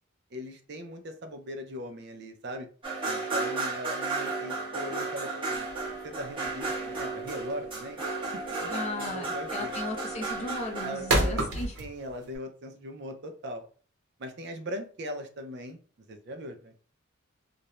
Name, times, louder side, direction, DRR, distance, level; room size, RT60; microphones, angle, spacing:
voice 1, 0.3-2.7 3.1-8.0 8.3-8.7 9.0-9.8 10.8-11.4 11.8-13.6 14.2-15.8 16.1-16.8, equal, 55° right, 5 dB, 0.5 m, -39 dB
sound 1, 2.8-11.7, right 3 dB, 25° right, 0.8 m, -34 dB
sound 2, 5.6-12.4, right 1 dB, 75° right, 1.0 m, -31 dB
voice 2, 8.6-11.7, left 1 dB, 30° left, 2 dB, 0.5 m, -36 dB
2.5 x 2.1 x 2.9 m, 0.40 s
head